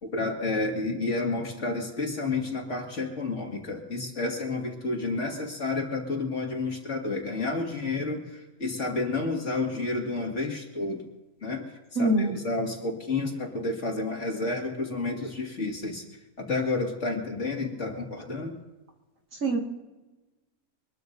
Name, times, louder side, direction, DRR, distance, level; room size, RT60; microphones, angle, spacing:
voice 1, 0.0-11.0 11.4-11.7 12.0-16.0 16.4-18.5, left 3 dB, 50° left, 1 dB, 2.5 m, -30 dB
voice 2, 12.0-12.4 19.3-19.6, right 1 dB, 60° right, 0 dB, 2.5 m, -24 dB
24.5 x 20.5 x 2.7 m, 1.1 s
omnidirectional pair, 1.5 m